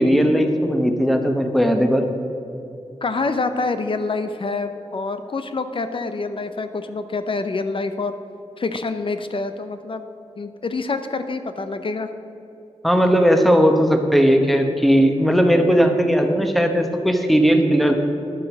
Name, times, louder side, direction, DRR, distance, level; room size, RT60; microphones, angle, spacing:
voice 1, 0.0-2.0 12.8-18.0, equal, ahead, 5 dB, 1.0 m, -17 dB
voice 2, 3.0-8.1 8.6-10.0 10.4-12.1, left 3 dB, 50° left, 9 dB, 0.6 m, -26 dB
11.0 x 7.5 x 6.1 m, 2.7 s
wide cardioid pair, 95°, 12 cm